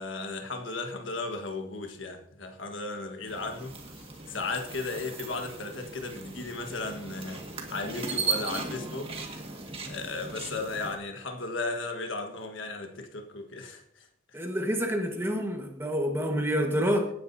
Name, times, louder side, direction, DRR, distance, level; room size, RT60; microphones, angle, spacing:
voice 1, 0.0-9.5 9.9-14.1, left 3 dB, 70° left, 1.5 m, -36 dB
sound 1, 3.3-11.0, right 4 dB, 30° right, 1.7 m, -37 dB
voice 2, 14.3-17.1, equal, 10° right, 1.4 m, -28 dB
18.0 x 9.5 x 2.7 m
head